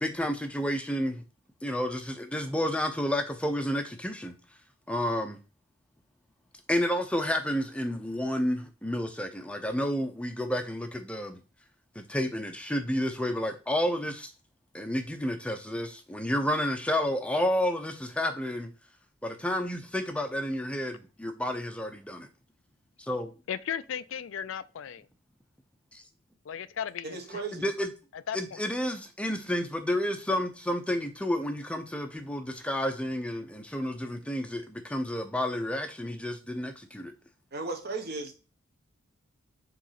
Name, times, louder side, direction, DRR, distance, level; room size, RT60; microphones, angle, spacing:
voice 1, 0.0-1.2 1.6-4.3 4.9-5.4 6.7-11.4 12.0-14.3 14.7-18.7 19.2-22.3 23.0-23.3 25.9-26.0 27.5-27.9 28.3-37.1, left 1 dB, 5° left, 0.6 m, -30 dB
voice 2, 23.5-25.1 26.5-27.4 28.1-28.6, left 8 dB, 65° left, 0.4 m, -36 dB
voice 3, 27.0-27.7 37.5-38.4, right 3 dB, 50° right, 1.3 m, -36 dB
5.1 x 3.9 x 5.7 m
head